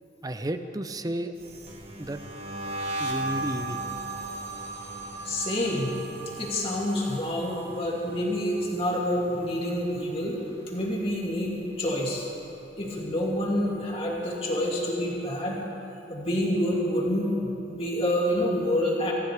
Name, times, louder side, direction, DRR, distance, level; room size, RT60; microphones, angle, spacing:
voice 1, 0.2-1.3 2.0-2.2 3.0-3.8, right 1 dB, 20° right, 9 dB, 0.6 m, -32 dB
sound 1, 1.4-10.5 10.8-11.3 11.6-13.1, right 2 dB, 35° right, 1.8 m, -37 dB
voice 2, 5.2-6.0 6.4-10.4 10.7-12.2 12.8-15.6 16.1-19.1, left 1 dB, 35° left, -4 dB, 2.7 m, -27 dB
24.5 x 14.5 x 3.4 m, 3.0 s
head